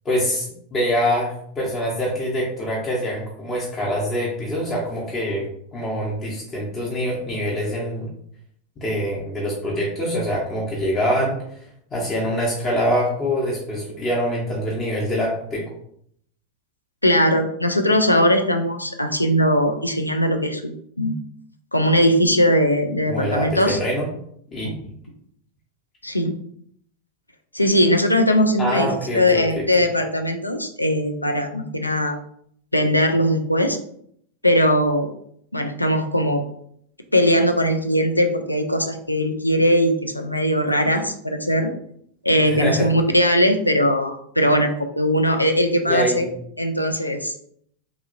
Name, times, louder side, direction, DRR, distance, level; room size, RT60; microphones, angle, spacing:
voice 1, 0.0-5.5 5.7-8.1 8.8-11.4 11.9-15.6 23.0-24.1 24.5-24.7 28.6-29.6 42.5-42.9 45.9-46.3, equal, 25° left, -4 dB, 0.7 m, -24 dB
voice 2, 17.0-21.1 21.7-23.8 24.6-24.7 26.0-26.4 27.5-32.2 32.7-33.8 34.4-35.1 35.5-36.4 37.1-41.7 42.2-46.3 46.6-47.3, equal, 85° left, 5 dB, 0.4 m, -20 dB
2.9 x 2.7 x 2.5 m, 0.67 s
figure-of-eight pair, 90°, 0 cm